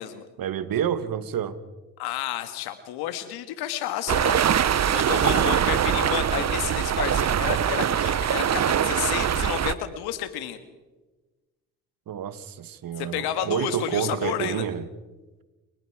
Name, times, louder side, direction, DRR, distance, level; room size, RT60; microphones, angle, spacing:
voice 1, 0.4-1.6 12.1-14.9, right 9 dB, 60° right, 13 dB, 1.6 m, -29 dB
voice 2, 2.0-4.4 4.9-10.6 13.0-14.7, left 11 dB, 85° left, 10 dB, 1.9 m, -31 dB
sound 1, 4.1-9.7, right 9 dB, 45° right, 0.9 m, -23 dB
29.5 x 18.0 x 4.9 m, 1.2 s
hypercardioid pair, 55°, 38 cm